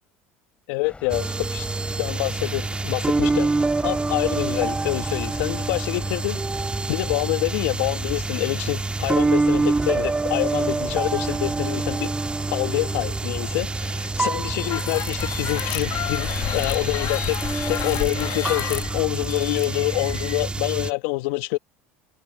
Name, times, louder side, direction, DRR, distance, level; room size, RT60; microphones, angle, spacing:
voice 1, 0.7-1.7 2.0-3.5 3.8-6.4 6.9-12.1 12.5-17.4 17.7-21.6, left 24 dB, 70° left, 1.7 m, -26 dB
sound 1, 0.8-16.0, left 3 dB, 15° left, 3.4 m, -43 dB
sound 2, 1.1-20.9, right 3 dB, 15° right, 1.8 m, -26 dB
sound 3, 14.5-20.4, left 14 dB, 55° left, 1.6 m, -31 dB
hypercardioid pair, 80°, 7 cm